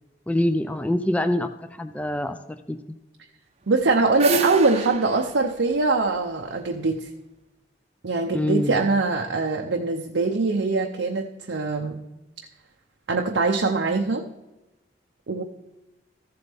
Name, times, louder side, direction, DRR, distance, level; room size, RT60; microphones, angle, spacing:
voice 1, 0.3-1.5 1.8-2.4 2.7-3.0 8.3-8.9, left 1 dB, 10° left, 9 dB, 0.4 m, -25 dB
sound 1, 3.7-6.9, right 4 dB, 35° right, 0.7 m, -29 dB
voice 2, 3.7-7.1 8.0-12.0 13.1-14.2 15.3-15.4, right 3 dB, 90° right, 2 dB, 0.7 m, -23 dB
14.5 x 7.8 x 3.5 m, 1.0 s
head